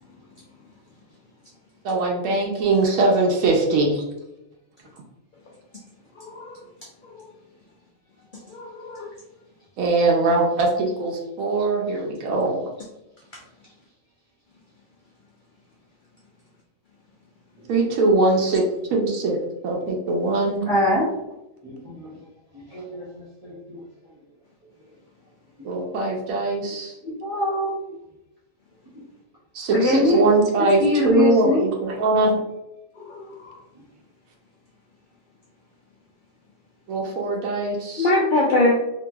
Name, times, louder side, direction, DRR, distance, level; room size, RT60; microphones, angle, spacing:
voice 1, 1.8-4.0 9.8-12.6 17.7-19.4 19.6-20.6 25.6-26.9 29.5-32.4 36.9-38.1, right 2 dB, 90° right, 0 dB, 1.0 m, -21 dB
voice 2, 6.2-6.6 8.5-9.1 33.0-33.3 38.0-38.7, left 2 dB, 90° left, -2 dB, 0.4 m, -22 dB
voice 3, 20.7-21.2 21.6-22.2 22.5-23.8 27.0-27.8 29.7-30.2 30.8-31.7, left 1 dB, 25° right, -10 dB, 0.6 m, -24 dB
2.9 x 2.6 x 2.3 m, 0.92 s
omnidirectional pair, 1.4 m